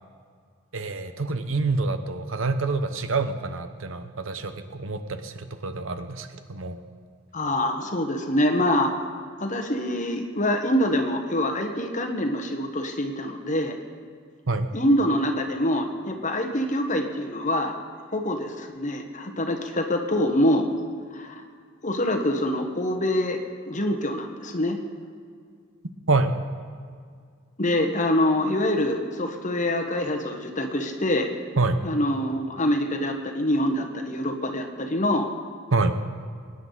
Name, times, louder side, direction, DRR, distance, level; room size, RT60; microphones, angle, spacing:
voice 1, 0.7-6.8 14.5-14.7 26.1-26.4 31.6-31.8 35.7-35.9, right 3 dB, 70° right, 9 dB, 0.9 m, -26 dB
voice 2, 7.3-8.9 9.4-13.8 14.7-17.7 18.1-20.7 21.1-21.4 21.8-24.8 27.6-31.3 31.8-35.3, left 1 dB, 40° left, 4 dB, 1.3 m, -25 dB
23.0 x 9.9 x 4.0 m, 2.1 s
head